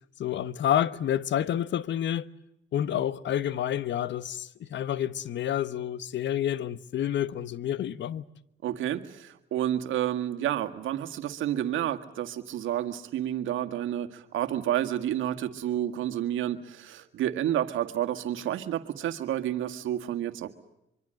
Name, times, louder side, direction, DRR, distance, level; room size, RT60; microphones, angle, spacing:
voice 1, 0.2-2.3 2.7-8.2, left 10 dB, 65° left, 1.1 m, -29 dB
voice 2, 8.6-20.5, right 11 dB, 80° right, 1.9 m, -30 dB
24.5 x 24.5 x 7.8 m
cardioid pair, 90°, 20 cm